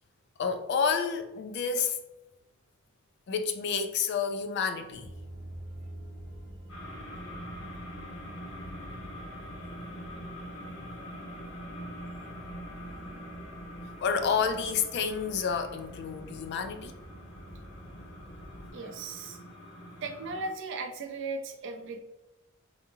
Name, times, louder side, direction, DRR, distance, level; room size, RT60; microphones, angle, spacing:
voice 1, 0.4-2.0 3.3-5.1 14.0-16.9, left 6 dB, 50° left, 0.3 m, -29 dB
sound 1, 4.9-18.7, equal, 35° left, 1.0 m, -48 dB
sound 2, 6.7-20.5, equal, 75° left, 1.0 m, -44 dB
voice 2, 18.7-19.4 20.0-22.0, right 3 dB, 60° right, 0.5 m, -37 dB
3.6 x 2.7 x 2.7 m
head